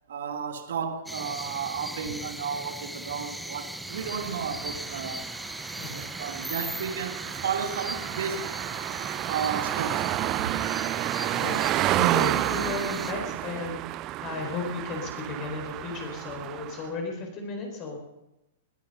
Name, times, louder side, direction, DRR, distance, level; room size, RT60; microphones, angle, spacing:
voice 1, 0.1-5.2 5.9-8.5 9.3-10.5 12.1-12.3, right 6 dB, 70° right, 1.6 m, -33 dB
sound 1, 1.1-13.1, right 1 dB, 5° right, 0.7 m, -38 dB
sound 2, 3.9-16.9, right 15 dB, 40° right, 0.5 m, -31 dB
voice 2, 11.9-18.0, left 3 dB, 40° left, 4.3 m, -34 dB
20.0 x 10.5 x 5.6 m
hypercardioid pair, 105°, 0 cm